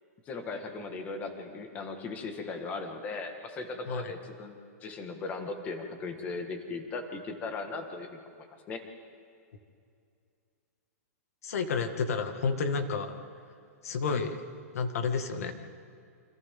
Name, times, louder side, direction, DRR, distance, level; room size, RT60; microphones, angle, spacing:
voice 1, 0.2-8.2 8.7-8.8, left 3 dB, 20° left, 5 dB, 1.8 m, -38 dB
voice 2, 11.4-13.1 13.8-14.4 14.7-15.5, left 5 dB, 70° left, 6 dB, 2.1 m, -30 dB
28.5 x 26.0 x 3.9 m, 2.4 s
hypercardioid pair, 165°, 8 cm